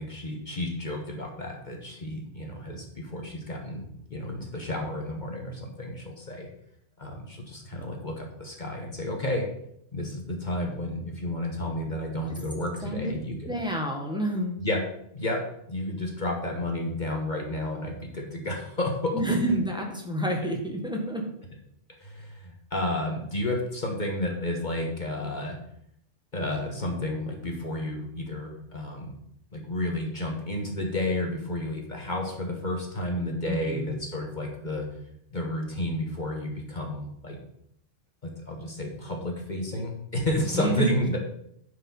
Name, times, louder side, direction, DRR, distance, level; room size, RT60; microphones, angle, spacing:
voice 1, 0.0-6.5 7.0-9.5 9.9-13.5 14.6-14.8 15.1-19.4 22.0-25.6 26.3-29.1 29.5-34.9 35.3-37.4 38.2-41.2, left 1 dB, 40° left, 1 dB, 1.4 m, -31 dB
voice 2, 13.4-14.6 19.1-21.2 33.4-33.9 40.5-41.2, right 1 dB, 5° right, 0 dB, 1.5 m, -29 dB
9.8 x 5.1 x 5.6 m, 0.73 s
omnidirectional pair, 1.3 m